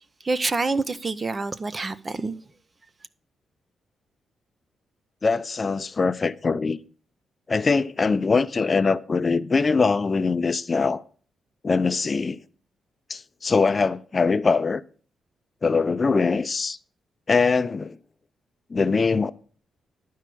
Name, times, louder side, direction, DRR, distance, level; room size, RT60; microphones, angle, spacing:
voice 1, 0.2-2.3, right 3 dB, 30° right, 0.6 m, -27 dB
voice 2, 5.2-6.8 7.5-11.0 11.6-12.4 13.1-14.8 15.6-16.8 17.3-18.0 18.7-19.3, left 4 dB, 35° left, 0.5 m, -22 dB
11.5 x 4.7 x 6.1 m
cardioid pair, 85°, 0 cm